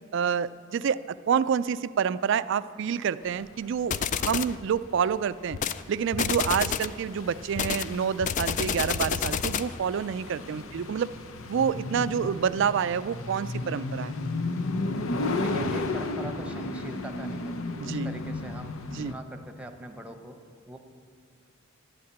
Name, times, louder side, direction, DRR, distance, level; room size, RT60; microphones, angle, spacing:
voice 1, 0.1-1.0 1.3-5.6 5.9-11.1 11.5-14.1 17.8-18.2 18.9-19.1, right 7 dB, 60° right, 15 dB, 0.3 m, -28 dB
sound 1, 3.3-19.1, left 2 dB, 85° left, 0.7 m, -34 dB
sound 2, 3.9-4.6 5.5-5.8 6.1-7.0 7.6-9.8, left 7 dB, 40° left, 0.3 m, -29 dB
voice 2, 15.4-20.4 20.7-20.8, right 1 dB, 5° right, 5 dB, 0.9 m, -42 dB
11.5 x 8.6 x 8.7 m, 2.4 s
head